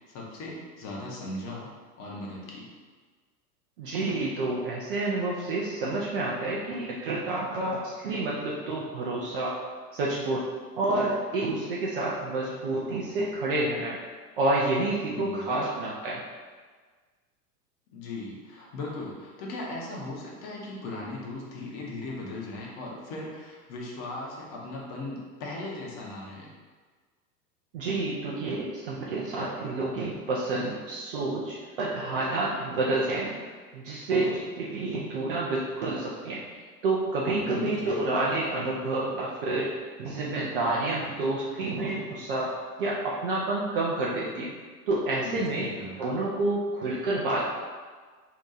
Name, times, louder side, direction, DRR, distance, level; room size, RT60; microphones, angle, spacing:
voice 1, 0.1-1.7 2.0-2.6 15.0-15.6 17.9-26.5 37.4-38.0 45.2-46.0, left 2 dB, 30° left, -3 dB, 0.7 m, -38 dB
voice 2, 3.8-9.6 9.9-10.5 10.8-14.0 14.4-16.2 27.7-33.3 33.7-36.4 36.8-42.5 42.8-44.5 44.9-45.7 46.0-47.5, right 2 dB, 35° right, -4 dB, 0.4 m, -29 dB
2.8 x 2.2 x 3.8 m, 1.5 s
figure-of-eight pair, 95°, 50 cm